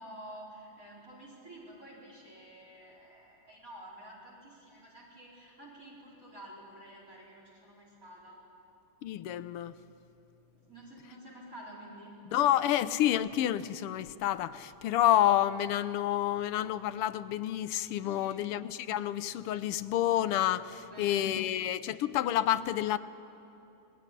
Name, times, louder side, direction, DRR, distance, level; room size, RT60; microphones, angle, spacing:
voice 1, 0.0-8.4 10.5-12.1 18.0-18.4 20.8-21.5, right 1 dB, 35° right, 5.0 m, -50 dB
voice 2, 9.0-9.7 12.3-23.0, left 12 dB, 85° left, 1.7 m, -29 dB
26.5 x 20.0 x 10.0 m
omnidirectional pair, 2.4 m